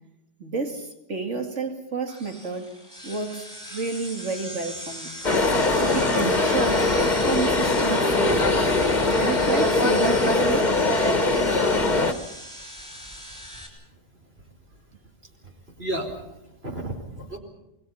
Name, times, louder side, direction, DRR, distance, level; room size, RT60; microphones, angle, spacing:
voice 1, 0.4-2.7 3.0-5.1 5.9-6.9 7.2-8.7 9.2-10.8, right 4 dB, 75° right, 4 dB, 2.8 m, -30 dB
sound 1, 2.1-13.7, equal, 15° right, 7.1 m, -39 dB
sound 2, 5.2-12.1, left 2 dB, 40° left, 1.7 m, -21 dB
voice 2, 15.8-17.4, right 1 dB, 55° right, 3 dB, 5.0 m, -33 dB
28.5 x 21.5 x 5.7 m, 0.89 s
omnidirectional pair, 1.2 m